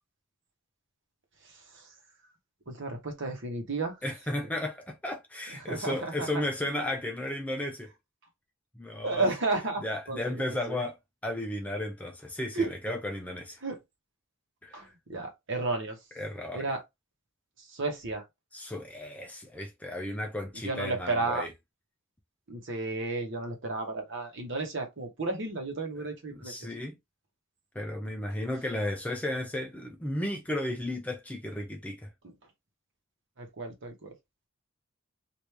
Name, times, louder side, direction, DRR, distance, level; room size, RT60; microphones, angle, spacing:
voice 1, 1.4-1.9 2.7-4.0 5.6-6.3 9.0-10.2 10.5-10.8 12.5-12.7 13.6-13.8 14.7-16.0 16.5-16.8 17.6-18.2 20.6-21.5 22.5-26.7 33.4-34.1, right 3 dB, 55° right, 1.0 m, -33 dB
voice 2, 4.0-7.9 8.8-9.3 9.8-10.9 11.2-13.6 14.6-14.9 16.2-16.6 18.5-21.5 26.4-27.0 27.7-32.1, left 1 dB, 5° left, 0.4 m, -34 dB
3.0 x 2.6 x 3.2 m
head